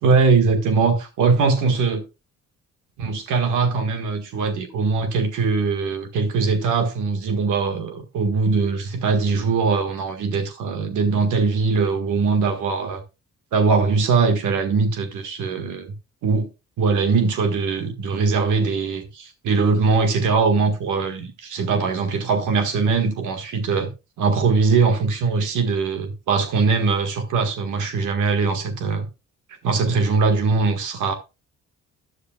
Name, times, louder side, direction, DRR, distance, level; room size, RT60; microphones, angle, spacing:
voice 1, 0.0-2.0 3.0-13.0 13.5-15.9 16.2-16.5 16.8-23.9 24.2-29.1 29.6-31.1, right 4 dB, 80° right, 1.7 m, -21 dB
13.0 x 9.8 x 2.3 m
cardioid pair, 90°, 30 cm